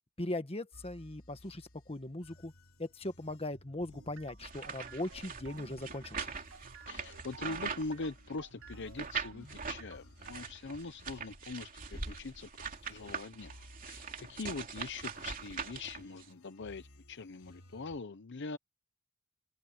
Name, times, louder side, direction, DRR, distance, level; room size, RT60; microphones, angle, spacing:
voice 1, 0.2-2.5 2.8-6.3, left 1 dB, 25° left, 1.6 m, -39 dB
sound 1, 0.7-18.0, left 1 dB, 75° left, 3.3 m, -59 dB
sound 2, 3.9-10.4, right 3 dB, 60° right, 2.5 m, -55 dB
sound 3, 4.4-8.4 9.0-9.8 10.2-16.3, right 5 dB, 40° right, 3.0 m, -42 dB
voice 2, 6.9-13.5 13.8-18.6, left 3 dB, 55° left, 0.7 m, -42 dB
head